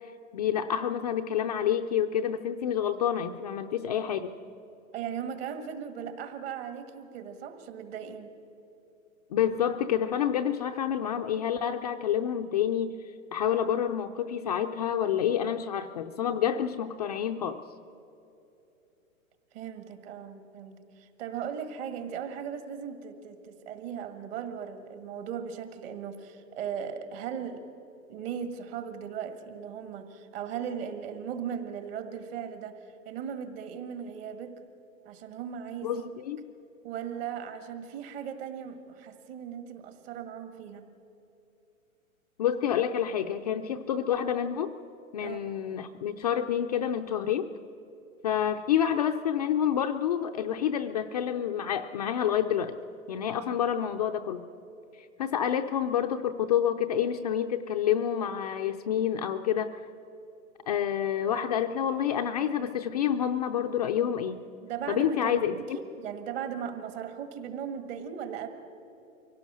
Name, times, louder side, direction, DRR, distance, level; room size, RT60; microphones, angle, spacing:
voice 1, 0.3-4.3 9.3-13.0 13.3-17.6 35.8-36.4 42.4-44.8 45.1-47.5 48.2-52.7 53.1-54.5 55.2-59.8 60.7-64.4 64.9-65.8, left 9 dB, 30° left, 5 dB, 0.4 m, -28 dB
voice 2, 4.9-8.3 19.5-27.6 28.1-32.8 33.1-34.6 35.1-36.0 36.8-40.8 45.2-45.4 64.6-68.5, right 8 dB, 45° right, 7 dB, 1.9 m, -37 dB
24.0 x 17.0 x 6.2 m, 2.9 s
hypercardioid pair, 140°, 42 cm